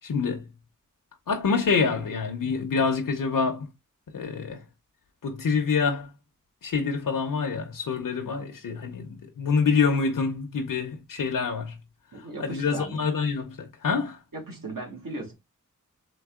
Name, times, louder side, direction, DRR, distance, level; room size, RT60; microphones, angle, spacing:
voice 1, 0.0-0.4 1.3-3.6 4.1-4.6 5.2-6.1 6.6-11.8 12.4-14.2, left 5 dB, 85° left, 0.8 m, -26 dB
voice 2, 12.1-13.1 14.3-15.3, right 2 dB, 90° right, 1.8 m, -37 dB
3.9 x 3.5 x 3.6 m
wide cardioid pair, 80°, 32 cm